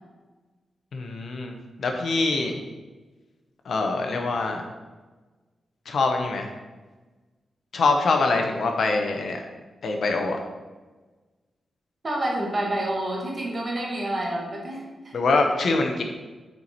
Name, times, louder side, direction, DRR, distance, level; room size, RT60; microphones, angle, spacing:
voice 1, 0.9-2.6 3.6-4.7 5.9-6.5 7.7-9.4 9.8-10.4 15.1-16.0, left 3 dB, 60° left, 3 dB, 0.8 m, -24 dB
voice 2, 12.0-15.1, right 1 dB, 35° right, -2 dB, 1.6 m, -28 dB
6.8 x 4.6 x 4.3 m, 1.3 s
wide cardioid pair, 165°, 0 cm